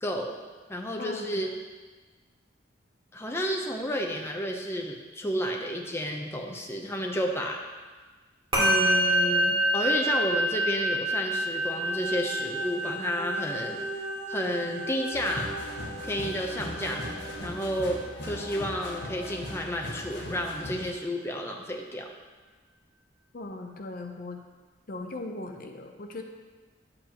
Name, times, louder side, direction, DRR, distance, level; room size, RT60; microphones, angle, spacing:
voice 1, 0.0-0.4 0.7-1.5 3.1-7.6 8.6-13.8 14.3-15.6 16.1-17.1 17.4-22.1, equal, 15° left, 1 dB, 0.7 m, -31 dB
voice 2, 1.0-1.5 23.3-24.4 24.9-26.2, left 2 dB, 50° left, 4 dB, 0.7 m, -39 dB
Musical instrument, 8.5-18.1, right 1 dB, 30° right, 2.8 m, -28 dB
sound 1, 11.3-17.4, right 3 dB, 45° right, 2.1 m, -41 dB
sound 2, 15.1-20.9, left 1 dB, 70° left, 1.2 m, -39 dB
10.5 x 7.8 x 2.9 m, 1.3 s
head